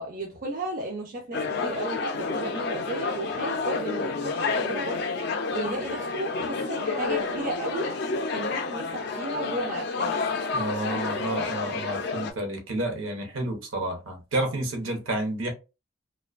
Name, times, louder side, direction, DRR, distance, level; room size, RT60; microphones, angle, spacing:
voice 1, 0.0-5.0 5.5-7.9 8.3-10.3, right 1 dB, 40° right, 0.4 m, -34 dB
sound 1, 1.3-12.3, left 4 dB, 50° left, 0.3 m, -30 dB
voice 2, 10.5-15.5, right 1 dB, 70° right, 0.7 m, -30 dB
2.5 x 2.2 x 2.3 m
head